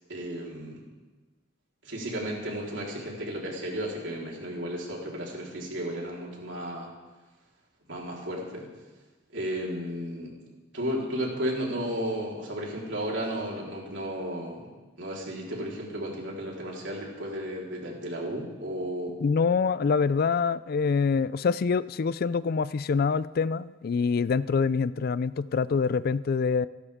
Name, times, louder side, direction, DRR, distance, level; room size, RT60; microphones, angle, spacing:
voice 1, 0.1-0.8 1.8-6.9 7.9-8.7 9.3-10.3 10.7-14.7 15.0-19.2, equal, 75° right, -3 dB, 4.1 m, -33 dB
voice 2, 19.2-26.7, left 5 dB, 55° left, 18 dB, 0.4 m, -25 dB
27.5 x 12.0 x 3.7 m, 1.2 s
head